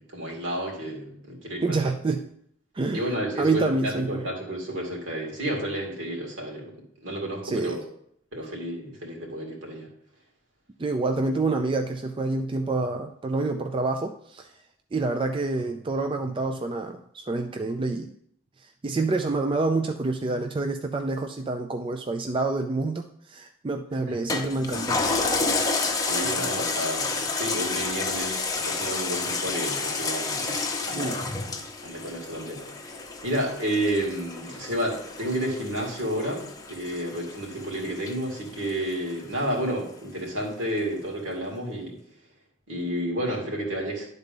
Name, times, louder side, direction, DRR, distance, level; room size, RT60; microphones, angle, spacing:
voice 1, 0.0-1.9 2.9-6.7 7.0-7.8 8.3-9.9 24.1-24.2 25.9-30.6 30.8-31.3 31.8-32.9 33.2-42.0 42.7-44.1, right 1 dB, 70° right, -1 dB, 2.5 m, -31 dB
voice 2, 1.6-2.2 2.7-3.0 3.4-4.2 7.4-7.8 10.8-14.5 14.9-18.1 18.6-25.0 26.2-26.5 31.0-31.2, right 3 dB, 25° right, 6 dB, 0.4 m, -27 dB
Toilet flush, 24.3-39.1 39.6-39.7, left 3 dB, 20° left, 0.8 m, -30 dB
10.5 x 4.0 x 5.3 m, 0.68 s
head